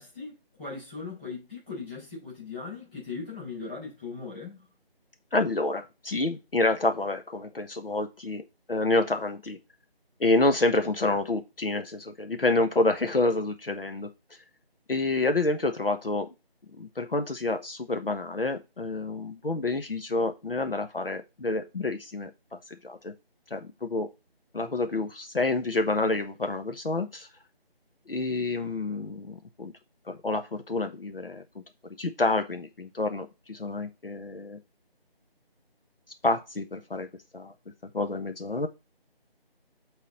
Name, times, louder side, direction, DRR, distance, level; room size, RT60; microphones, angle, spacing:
voice 1, 0.0-4.6, left 4 dB, 10° left, 4.9 m, -39 dB
voice 2, 5.3-9.6 10.2-14.1 14.9-16.3 16.8-22.3 22.7-23.1 23.5-24.1 24.5-27.3 28.1-29.7 30.1-31.4 32.0-34.6 36.2-37.1 37.3-37.5 37.9-38.7, left 2 dB, 65° left, 1.2 m, -28 dB
8.3 x 4.1 x 4.2 m
figure-of-eight pair, 175°, 31 cm